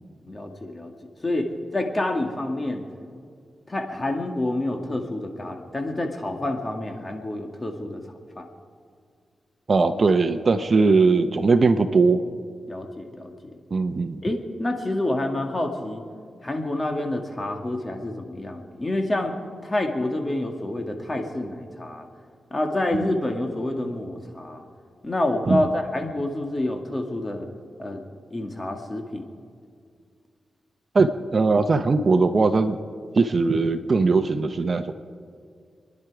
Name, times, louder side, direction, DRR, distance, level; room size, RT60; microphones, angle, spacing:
voice 1, 0.2-0.9 1.2-2.9 3.7-8.0 8.4-8.5 12.7-13.6 14.2-16.0 16.4-19.3 19.6-22.1 22.5-24.6 25.0-27.5 27.8-28.0 28.3-29.3, left 1 dB, 30° left, 3 dB, 2.1 m, -28 dB
voice 2, 9.7-12.2 13.7-14.2 23.0-23.1 25.5-25.7 30.9-32.8 33.1-34.9, right 4 dB, 50° right, 9 dB, 0.8 m, -20 dB
28.0 x 10.5 x 4.9 m, 2.2 s
cardioid pair, 70°, 0 cm